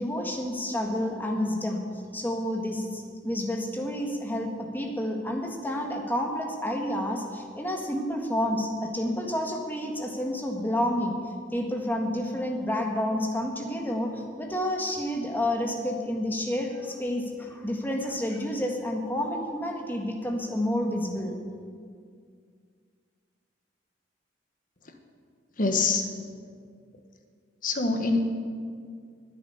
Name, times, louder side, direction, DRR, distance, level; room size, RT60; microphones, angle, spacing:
voice 1, 0.0-1.8 2.1-11.2 11.5-21.4, left 1 dB, 10° left, 2 dB, 1.5 m, -29 dB
voice 2, 25.6-26.1 27.6-28.2, left 3 dB, 45° left, 5 dB, 1.3 m, -24 dB
11.0 x 9.3 x 9.9 m, 2.1 s
head